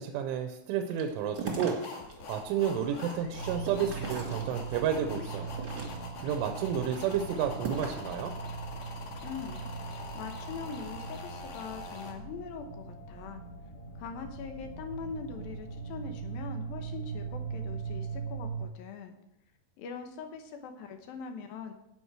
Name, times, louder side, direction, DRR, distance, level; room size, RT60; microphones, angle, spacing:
voice 1, 0.0-1.8 2.3-5.6 6.2-8.3, right 8 dB, 85° right, 5 dB, 3.4 m, -31 dB
sound 1, 0.9-2.1 2.6-4.9 5.4-6.3 6.8-8.1, right 4 dB, 35° right, 1.7 m, -39 dB
sound 2, 1.8-12.1, left 3 dB, 60° left, 2.9 m, -44 dB
sound 3, 3.3-18.7, right 5 dB, 40° left, 3.2 m, -40 dB
voice 2, 9.2-9.7 10.1-13.4 14.0-19.1 19.8-21.7, left 6 dB, 75° left, 5 dB, 2.2 m, -42 dB
17.0 x 6.3 x 4.8 m, 0.81 s
omnidirectional pair, 5.5 m